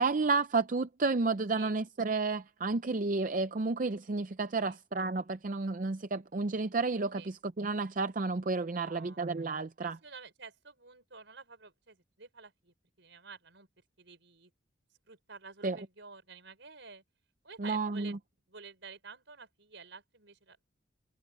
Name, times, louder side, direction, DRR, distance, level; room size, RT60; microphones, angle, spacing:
voice 1, 0.0-10.0 15.6-15.8 17.6-18.2, right 3 dB, 40° right, 0.5 m, -31 dB
voice 2, 8.7-9.2 9.8-13.7 14.0-14.5 15.1-17.0 17.4-18.2 18.5-20.6, right 5 dB, 65° right, 5.0 m, -51 dB
head